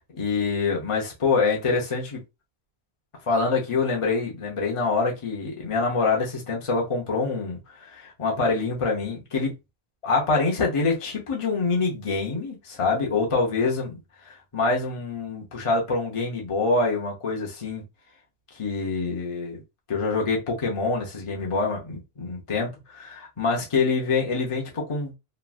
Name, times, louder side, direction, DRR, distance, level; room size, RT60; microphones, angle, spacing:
voice 1, 0.1-2.2 3.3-9.5 10.0-14.0 14.3-17.8 18.6-19.6 19.9-25.1, left 4 dB, 35° left, 0.8 m, -25 dB
3.1 x 2.3 x 2.4 m
omnidirectional pair, 1.1 m